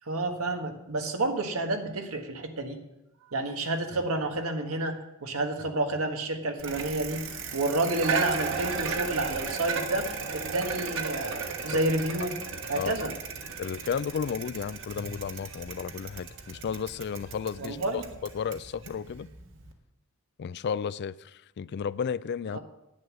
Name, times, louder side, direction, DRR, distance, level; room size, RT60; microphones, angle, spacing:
voice 1, 0.1-2.8 3.3-7.2 7.5-12.3 12.7-13.1 17.6-18.0 22.5-22.6, right 2 dB, 90° right, 1.6 m, -30 dB
Bicycle, 6.6-19.7, right 5 dB, 65° right, 1.4 m, -35 dB
voice 2, 13.6-18.0 18.3-19.3 20.4-22.6, left 6 dB, 50° left, 0.3 m, -33 dB
10.5 x 9.3 x 6.2 m
head